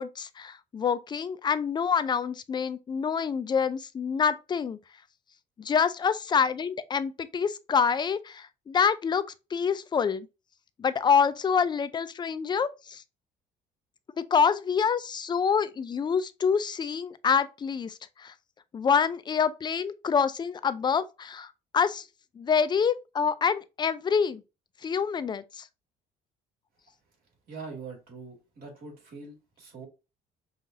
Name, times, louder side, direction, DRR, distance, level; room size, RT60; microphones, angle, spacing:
voice 1, 0.0-4.8 5.6-9.2 9.5-10.3 10.8-13.0 14.2-18.3 18.7-22.0 22.4-24.4 24.8-25.7, left 6 dB, 25° left, 0.4 m, -26 dB
voice 2, 27.5-29.9, right 4 dB, 60° right, 2.3 m, -43 dB
5.5 x 2.4 x 2.7 m
cardioid pair, 110°, 17 cm